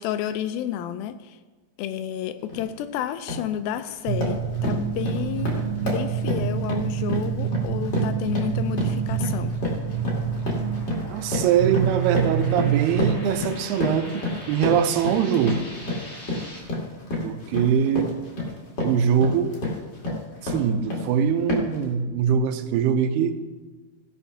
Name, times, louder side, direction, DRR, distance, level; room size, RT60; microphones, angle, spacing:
voice 1, 0.0-1.4 1.8-9.6, left 10 dB, 80° left, 11 dB, 2.3 m, -31 dB
sound 1, 2.5-2.7 3.1-3.5 3.9-21.1 21.5-21.8, left 2 dB, 35° left, 2.0 m, -30 dB
sound 2, 4.1-13.4, right 8 dB, 70° right, 2.5 m, -27 dB
sound 3, 8.5-16.6, equal, 20° left, 2.9 m, -44 dB
voice 2, 11.1-15.6 17.2-18.1 18.8-19.6 20.4-23.4, right 8 dB, 90° right, 8 dB, 2.8 m, -23 dB
16.0 x 5.7 x 5.7 m, 1.3 s
omnidirectional pair, 4.5 m